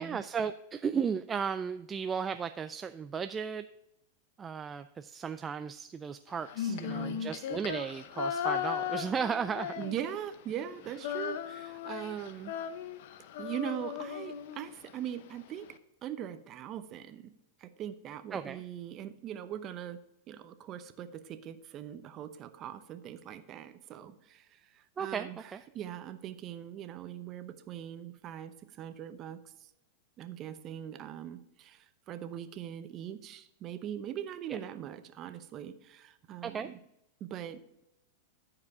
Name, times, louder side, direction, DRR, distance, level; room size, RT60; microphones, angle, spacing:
voice 1, 0.0-3.7 4.4-9.7 18.3-18.6 25.0-25.6 34.5-34.6 36.4-36.7, right 6 dB, 20° right, 10 dB, 0.3 m, -35 dB
Female singing, 6.4-10.3 10.6-14.9, left 8 dB, 65° left, 0.7 m, -37 dB
voice 2, 6.7-7.3 9.8-12.6 13.4-15.7 16.0-17.3 17.6-20.0 20.3-29.7 30.2-36.8 37.2-37.8, right 10 dB, 35° right, 10 dB, 0.8 m, -41 dB
14.0 x 4.9 x 3.6 m, 0.86 s
hypercardioid pair, 115°, 0 cm